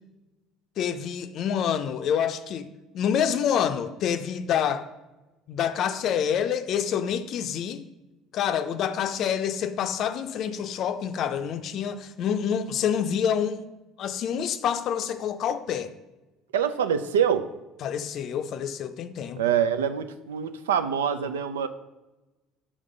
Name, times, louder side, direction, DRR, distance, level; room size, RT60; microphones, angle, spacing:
voice 1, 0.8-2.7 2.9-4.9 5.5-7.8 8.3-13.6 14.0-15.9 17.8-19.4, left 8 dB, 60° left, 0.5 m, -27 dB
voice 2, 16.5-17.5 19.4-21.7, right 8 dB, 90° right, 0.3 m, -25 dB
5.1 x 3.6 x 5.2 m
hypercardioid pair, 65°, 0 cm